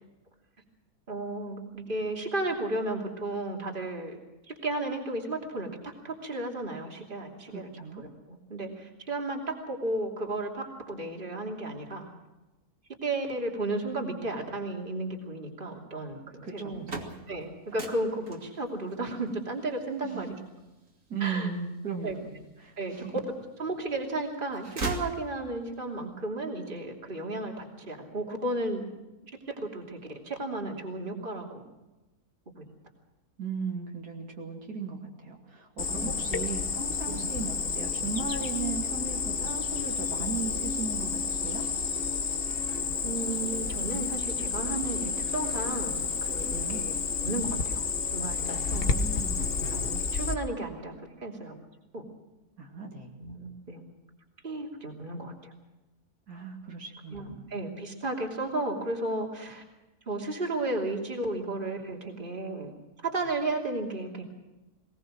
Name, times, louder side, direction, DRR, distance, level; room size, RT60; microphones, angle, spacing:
voice 1, 1.1-4.2 4.5-7.7 8.0-12.1 13.0-20.4 21.2-21.5 22.0-22.2 22.8-23.1 23.6-28.9 29.5-30.0 30.2-31.6 36.0-36.1 37.1-37.3 40.2-40.3 43.0-45.9 46.2-46.9 47.2-47.8 48.1-48.9 49.7-51.5 51.9-52.1 53.2-53.8 54.4-55.5 57.1-59.6 60.1-62.7 63.0-64.2, right 2 dB, 35° right, 1 dB, 3.2 m, -34 dB
voice 2, 7.5-8.0 16.4-17.1 20.0-20.4 21.1-23.2 33.4-41.6 46.5-46.9 48.7-49.6 52.6-53.2 56.3-57.6, right 5 dB, 80° right, 1 dB, 3.3 m, -37 dB
sound 1, 16.5-22.5 23.1-23.9 24.2-25.8, right 2 dB, 55° right, 2.8 m, -40 dB
Cricket, 35.8-50.3, left 5 dB, 40° left, 1.4 m, -30 dB
20.5 x 20.5 x 6.4 m, 1.1 s
omnidirectional pair, 1.6 m